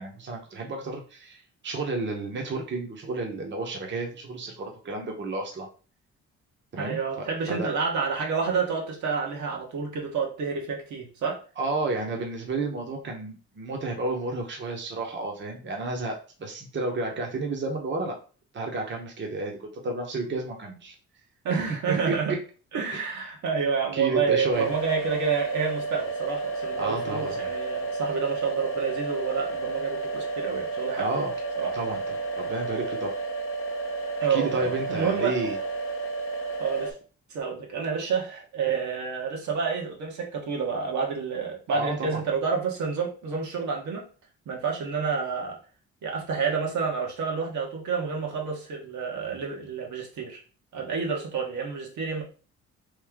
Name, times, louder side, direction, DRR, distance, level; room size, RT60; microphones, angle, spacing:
voice 1, 0.0-5.7 6.7-7.7 11.6-18.2 18.5-20.9 21.9-22.1 22.9-23.0 23.9-24.7 26.8-27.4 31.0-31.3 31.7-33.1 34.3-35.6 41.7-42.2, right 3 dB, 40° right, 1 dB, 0.9 m, -31 dB
voice 2, 6.8-11.4 21.4-22.3 22.7-31.1 31.6-31.7 34.2-35.3 36.6-36.9 37.3-44.0 44.5-45.6 46.0-50.4 50.7-52.2, right 5 dB, 70° right, 0 dB, 1.2 m, -29 dB
sound 1, 24.5-36.9, right 3 dB, 45° left, 0.8 m, -31 dB
3.2 x 2.7 x 3.5 m, 0.38 s
cardioid pair, 90°, 30 cm